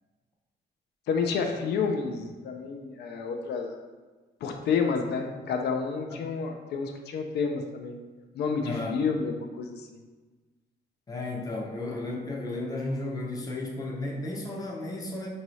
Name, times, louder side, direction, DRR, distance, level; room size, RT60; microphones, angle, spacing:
voice 1, 1.1-3.8 4.4-8.0 8.3-9.9, left 5 dB, 70° left, 4 dB, 0.4 m, -30 dB
voice 2, 8.6-9.0 11.1-15.3, left 2 dB, 20° left, -1 dB, 0.6 m, -33 dB
4.6 x 2.7 x 3.0 m, 1.3 s
cardioid pair, 160°, 18 cm